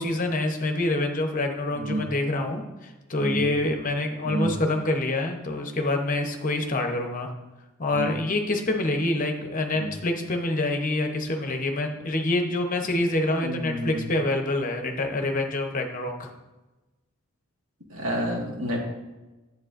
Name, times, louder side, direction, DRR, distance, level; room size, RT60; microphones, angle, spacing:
voice 1, 0.0-7.3 7.8-16.3, left 2 dB, 40° left, 4 dB, 0.9 m, -26 dB
voice 2, 1.7-2.1 3.2-3.5 4.2-4.5 7.9-8.1 9.7-9.9 13.4-14.1 17.9-18.8, equal, 75° right, -1 dB, 1.7 m, -29 dB
9.5 x 8.0 x 2.5 m, 1.1 s
head